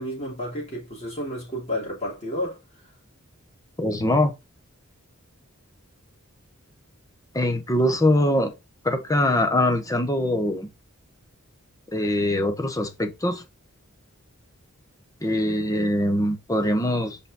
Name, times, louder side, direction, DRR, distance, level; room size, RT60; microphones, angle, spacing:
voice 1, 0.0-2.6, equal, 35° left, 3.7 m, -31 dB
voice 2, 3.8-4.3 7.3-8.5 8.8-10.7 11.9-13.4 15.2-17.2, left 1 dB, 15° left, 1.0 m, -23 dB
5.2 x 4.9 x 3.9 m
head